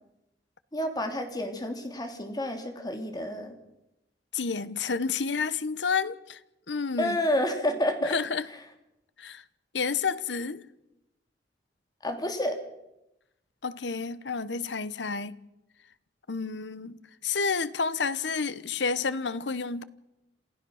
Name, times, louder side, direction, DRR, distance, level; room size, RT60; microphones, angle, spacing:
voice 1, 0.7-3.6 7.0-8.1 12.0-12.6, left 1 dB, 25° left, 2.8 m, -29 dB
voice 2, 4.3-6.4 6.7-7.2 8.0-8.4 9.2-9.4 9.7-10.7 13.6-15.4 16.3-19.8, left 5 dB, 90° left, 1.0 m, -30 dB
27.5 x 15.5 x 6.5 m
head